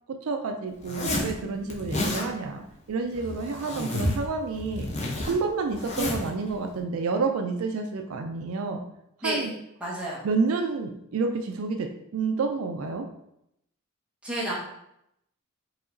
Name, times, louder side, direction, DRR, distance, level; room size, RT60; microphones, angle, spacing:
voice 1, 0.1-4.9 5.2-8.8 9.2-9.5 10.2-13.0, right 4 dB, 70° right, 4 dB, 0.4 m, -29 dB
Zipper (clothing), 0.8-1.3 1.7-2.3 3.1-4.3 4.5-6.3, left 1 dB, 30° left, 0.6 m, -30 dB
voice 2, 9.8-10.2 14.2-14.5, right 1 dB, 5° right, -7 dB, 1.1 m, -30 dB
4.8 x 2.9 x 2.6 m, 0.79 s
head